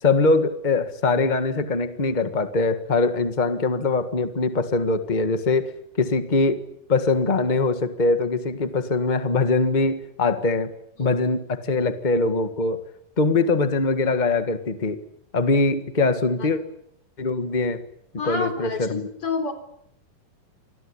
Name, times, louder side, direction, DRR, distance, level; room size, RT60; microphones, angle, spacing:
voice 1, 0.0-6.6 6.9-10.7 11.0-12.8 13.2-15.0 15.3-16.6 17.2-17.8 18.2-19.1, left 3 dB, 75° left, 10 dB, 0.4 m, -22 dB
voice 2, 18.2-19.5, left 4 dB, 40° left, 8 dB, 4.6 m, -28 dB
27.0 x 20.5 x 9.8 m, 0.75 s
omnidirectional pair, 4.0 m